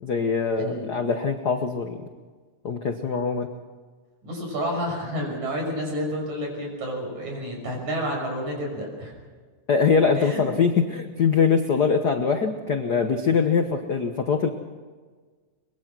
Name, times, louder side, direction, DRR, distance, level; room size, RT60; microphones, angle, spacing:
voice 1, 0.0-2.0 2.6-3.5 9.7-14.5, left 5 dB, 60° left, 6 dB, 1.0 m, -23 dB
voice 2, 0.6-0.9 4.2-9.1 10.2-10.4, equal, 65° right, 1 dB, 7.4 m, -30 dB
23.5 x 22.0 x 6.2 m, 1.5 s
omnidirectional pair, 3.6 m